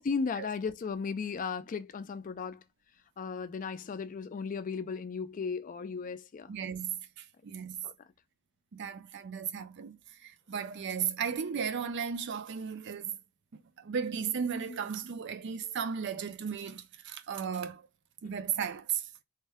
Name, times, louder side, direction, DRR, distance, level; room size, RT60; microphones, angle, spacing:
voice 1, 0.0-2.6 3.2-6.5 7.8-7.9 14.7-14.8, left 5 dB, 40° left, 0.4 m, -35 dB
voice 2, 6.5-7.8 8.7-13.2 13.8-17.9 18.2-19.1, right 7 dB, 55° right, 0.4 m, -35 dB
3.3 x 2.1 x 3.4 m
head